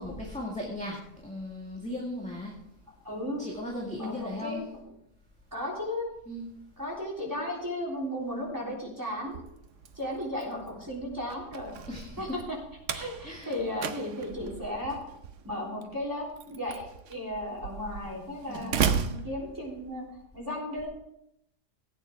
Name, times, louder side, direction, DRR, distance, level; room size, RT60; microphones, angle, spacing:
voice 1, 0.0-2.6 3.4-4.6 6.3-6.5 11.9-12.4 13.2-13.5 18.5-18.9, left 1 dB, 5° left, -3 dB, 1.8 m, -37 dB
voice 2, 3.0-3.4 4.0-4.7 5.5-6.1 6.8-9.4 10.0-11.7 12.2-12.6 12.9-15.0 15.4-20.1 20.3-20.9, left 1 dB, 10° right, -4 dB, 3.5 m, -35 dB
Slam, 9.2-20.1, right 7 dB, 55° right, 1.0 m, -36 dB
17.5 x 8.9 x 3.6 m, 0.79 s
omnidirectional pair, 1.8 m